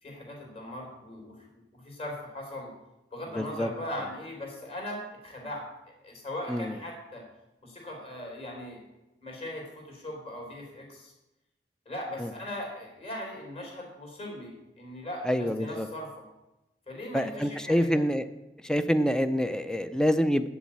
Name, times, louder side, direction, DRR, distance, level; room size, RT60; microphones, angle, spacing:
voice 1, 0.0-2.7 3.1-5.6 6.0-7.2 7.6-8.8 9.2-11.1 11.9-16.2 16.9-18.0, left 1 dB, 35° left, -1 dB, 3.6 m, -39 dB
voice 2, 3.4-3.7 6.5-6.7 15.3-15.9 17.1-18.2 18.6-20.5, equal, 5° left, 11 dB, 0.5 m, -26 dB
8.4 x 7.2 x 8.6 m, 0.97 s
head